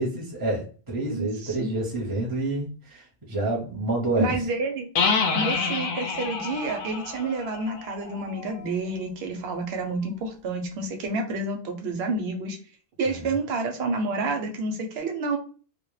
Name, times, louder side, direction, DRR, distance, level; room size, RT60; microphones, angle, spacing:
voice 1, 0.0-4.3 13.1-13.3, right 2 dB, 25° right, -4 dB, 0.6 m, -28 dB
voice 2, 1.1-1.7 4.2-4.9 5.3-12.6 13.0-15.4, right 3 dB, 80° right, 4 dB, 0.8 m, -29 dB
sound 1, 4.9-8.6, left 5 dB, 65° left, 0.7 m, -28 dB
2.1 x 2.0 x 3.0 m, 0.38 s
omnidirectional pair, 1.0 m